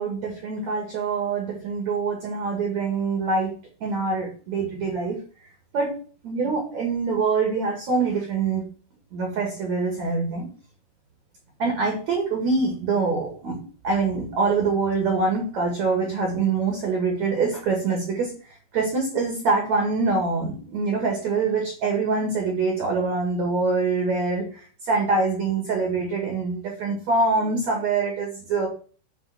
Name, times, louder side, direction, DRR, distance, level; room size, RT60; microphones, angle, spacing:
voice 1, 0.0-3.6 3.8-5.2 5.7-6.0 6.2-8.6 9.1-10.5 11.6-13.6 13.8-28.7, right 4 dB, 50° right, 1 dB, 2.3 m, -24 dB
10.5 x 4.0 x 5.9 m, 0.40 s
omnidirectional pair, 5.6 m